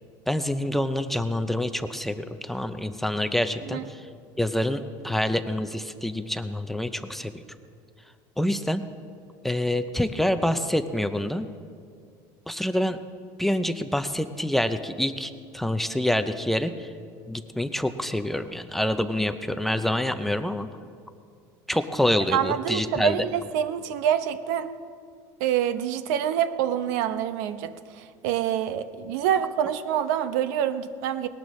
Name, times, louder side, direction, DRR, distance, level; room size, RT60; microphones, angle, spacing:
voice 1, 0.3-4.0 4.4-7.3 8.4-8.8 9.4-11.5 12.5-13.0 13.4-16.9 17.3-20.7 21.7-23.2, left 1 dB, 5° left, 9 dB, 0.4 m, -26 dB
voice 2, 22.3-24.8 25.4-31.3, right 9 dB, 85° right, 11 dB, 0.8 m, -26 dB
20.0 x 18.0 x 3.1 m, 2.3 s
cardioid pair, 175°, 9 cm